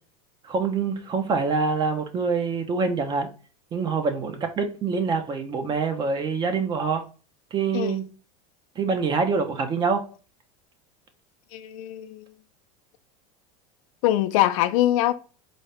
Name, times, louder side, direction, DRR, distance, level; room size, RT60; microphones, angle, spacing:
voice 1, 0.5-3.3 3.7-7.0 7.5-8.0 8.8-10.0, right 5 dB, 25° right, 0.6 m, -25 dB
voice 2, 11.5-12.3 14.0-15.1, left 14 dB, 70° left, 0.5 m, -23 dB
4.0 x 2.3 x 3.3 m
supercardioid pair, 145°, 19 cm